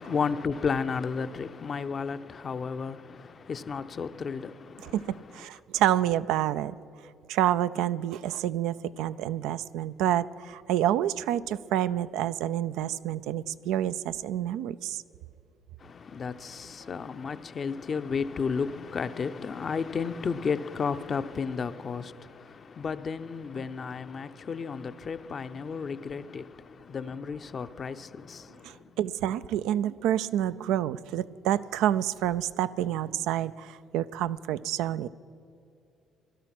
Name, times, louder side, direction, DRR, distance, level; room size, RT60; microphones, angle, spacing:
voice 1, 0.0-5.0 15.8-28.7, left 5 dB, 45° left, 0.6 m, -33 dB
voice 2, 4.8-6.7 7.3-15.0 28.6-35.1, right 11 dB, 80° right, 0.3 m, -28 dB
16.5 x 12.0 x 6.0 m
supercardioid pair, 65°, 0 cm